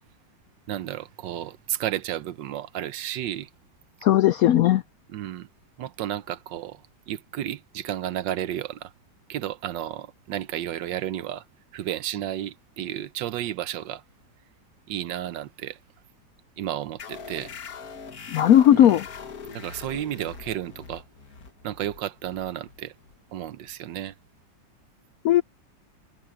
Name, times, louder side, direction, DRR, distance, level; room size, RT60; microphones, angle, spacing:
voice 1, 0.7-3.5 5.1-5.5 5.8-8.9 9.3-11.4 11.7-14.0 14.9-15.8 16.6-17.5 18.7-18.9 19.5-21.0 21.6-22.9 23.3-24.2, right 12 dB, 80° right, 1.4 m, -32 dB
voice 2, 4.0-4.8 18.3-19.1 25.2-25.4, left 11 dB, 75° left, 0.8 m, -17 dB
sound 1, 17.0-24.1, left 5 dB, 55° left, 1.9 m, -42 dB
omnidirectional pair, 2.0 m